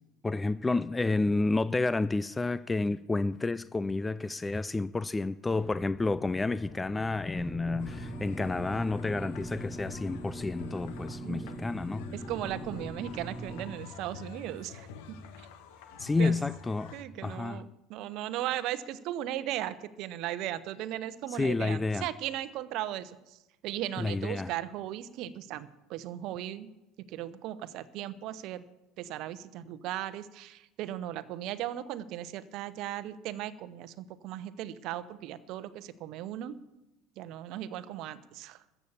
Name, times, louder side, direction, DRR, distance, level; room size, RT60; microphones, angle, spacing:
voice 1, 0.2-12.1 16.0-16.9 17.2-17.6 21.3-22.1 24.0-24.5, left 3 dB, 15° left, 0.4 m, -30 dB
sound 1, 5.6-11.0, left 4 dB, 50° left, 1.5 m, -49 dB
sound 2, 7.4-13.8, right 1 dB, 20° right, 1.0 m, -41 dB
sound 3, 7.8-17.0, left 5 dB, 65° left, 1.2 m, -48 dB
voice 2, 11.2-11.5 11.9-15.2 16.2-16.4 16.9-26.7 27.0-28.6 29.0-36.6 37.2-38.6, right 12 dB, 55° right, 0.9 m, -37 dB
14.0 x 8.3 x 7.2 m
figure-of-eight pair, 70°, 0 cm